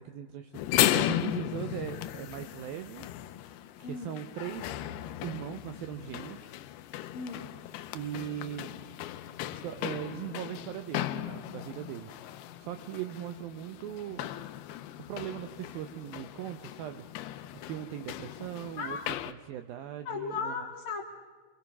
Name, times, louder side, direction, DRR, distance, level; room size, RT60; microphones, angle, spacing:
voice 1, 0.0-3.1 3.8-4.8 5.2-6.5 7.9-8.7 9.5-14.3 15.1-17.1 17.6-19.0 19.3-20.7, right 11 dB, 75° right, 9 dB, 2.2 m, -39 dB
sound 1, 0.5-19.3, left 13 dB, 75° left, 2.5 m, -36 dB
voice 2, 3.8-4.2 7.1-7.5 18.8-19.0 20.0-21.0, left 5 dB, 50° left, -1 dB, 1.7 m, -36 dB
27.5 x 23.5 x 6.0 m, 1.5 s
omnidirectional pair, 5.1 m